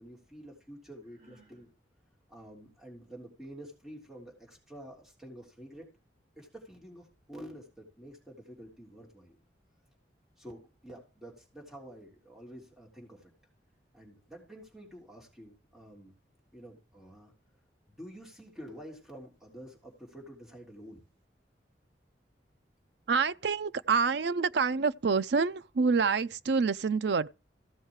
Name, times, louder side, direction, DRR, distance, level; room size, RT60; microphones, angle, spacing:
voice 1, 0.0-1.7 2.3-5.9 6.4-9.4 10.4-13.3 13.9-16.1 16.5-17.3 17.9-21.0, equal, ahead, 3.3 m, -49 dB
Sigh, 1.0-1.7, right 1 dB, 45° right, 7.3 m, -61 dB
voice 2, 23.1-27.3, right 5 dB, 65° right, 0.5 m, -27 dB
15.0 x 6.5 x 4.7 m
head